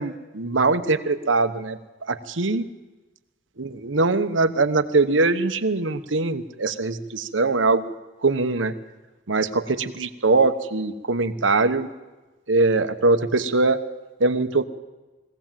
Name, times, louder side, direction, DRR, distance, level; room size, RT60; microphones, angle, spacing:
voice 1, 0.0-2.7 3.6-7.9 8.2-8.7 9.3-11.9 12.5-13.8 14.2-14.7, right 3 dB, 85° right, 10 dB, 1.1 m, -22 dB
21.5 x 16.5 x 7.5 m, 1.2 s
head